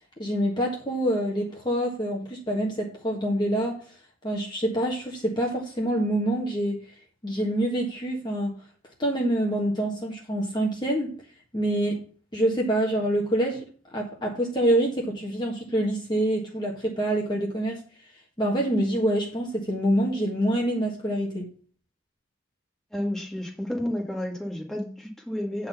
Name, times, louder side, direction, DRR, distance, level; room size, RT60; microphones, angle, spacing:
voice 1, 0.2-3.8 4.2-6.8 7.2-8.5 9.0-11.1 11.5-12.0 12.3-13.6 13.9-17.8 18.4-21.5, right 1 dB, 20° left, 1.5 m, -26 dB
voice 2, 22.9-25.7, left 1 dB, ahead, 1.9 m, -31 dB
9.2 x 4.1 x 6.9 m
head